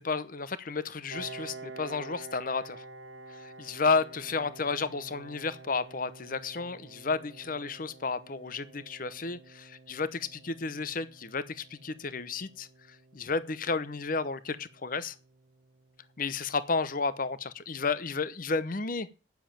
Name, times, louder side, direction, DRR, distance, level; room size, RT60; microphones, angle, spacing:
voice 1, 0.0-2.8 3.3-12.7 13.1-15.1 16.2-19.1, left 4 dB, 45° left, 0.8 m, -32 dB
Piano, 1.1-16.5, right 3 dB, 80° right, 1.5 m, -49 dB
9.4 x 7.4 x 8.8 m
head